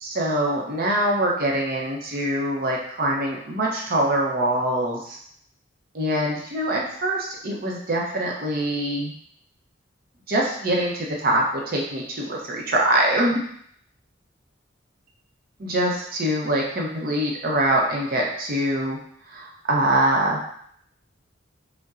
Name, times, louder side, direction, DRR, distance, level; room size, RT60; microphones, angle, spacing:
voice 1, 0.0-5.2 5.9-9.1 10.3-13.4 15.6-19.0 19.3-20.4, right 1 dB, 50° right, -1 dB, 0.6 m, -24 dB
5.3 x 2.1 x 2.4 m, 0.66 s
head